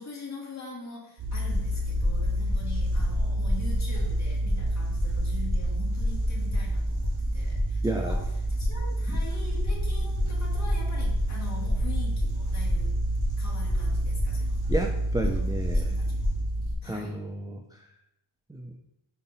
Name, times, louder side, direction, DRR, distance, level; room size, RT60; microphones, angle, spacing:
voice 1, 0.0-12.9 13.4-14.6 15.2-15.4 15.7-16.3 16.8-17.2, left 3 dB, 35° left, -3 dB, 1.9 m, -43 dB
sound 1, 1.2-16.7, equal, 40° right, 2.1 m, -27 dB
voice 2, 7.8-8.2 9.1-9.2 14.7-15.9 16.8-17.8 18.5-18.8, right 2 dB, 10° right, 3 dB, 0.3 m, -32 dB
5.7 x 4.8 x 4.0 m, 0.84 s
wide cardioid pair, 130°, 49 cm